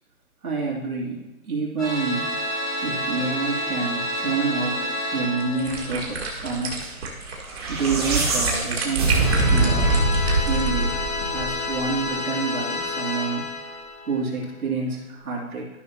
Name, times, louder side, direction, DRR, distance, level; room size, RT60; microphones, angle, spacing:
voice 1, 0.4-2.3 2.8-7.0 7.7-10.1 10.4-13.4 14.1-15.7, right 4 dB, 75° right, -3 dB, 3.0 m, -28 dB
sound 1, 1.8-6.4 9.2-14.4, left 1 dB, ahead, 0.8 m, -29 dB
sound 2, 5.2-10.9, right 3 dB, 45° right, 1.9 m, -32 dB
sound 3, 7.4-11.8, right 2 dB, 15° right, 1.2 m, -23 dB
13.5 x 6.2 x 2.9 m, 1.1 s
hypercardioid pair, 170°, 44 cm